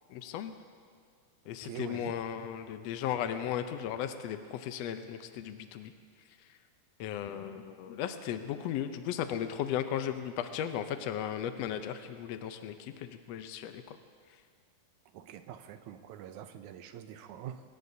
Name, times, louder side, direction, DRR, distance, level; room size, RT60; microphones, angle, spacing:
voice 1, 0.1-0.5 1.5-5.9 7.0-14.0, left 9 dB, 85° left, 8 dB, 1.4 m, -36 dB
voice 2, 1.6-2.1 15.1-17.6, right 10 dB, 75° right, 8 dB, 2.0 m, -44 dB
24.0 x 19.5 x 2.7 m, 2.1 s
omnidirectional pair, 3.7 m